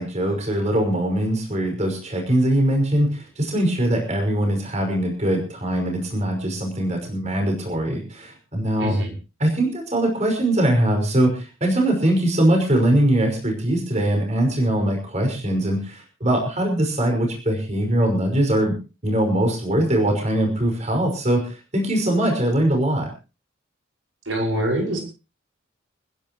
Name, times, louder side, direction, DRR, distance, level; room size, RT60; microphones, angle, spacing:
voice 1, 0.0-8.9 9.4-18.8 19.0-23.1, right 1 dB, 35° right, 2 dB, 5.5 m, -22 dB
voice 2, 8.8-9.1 24.3-25.0, right 1 dB, 75° right, 0 dB, 5.8 m, -24 dB
30.0 x 11.0 x 3.1 m, 0.32 s
head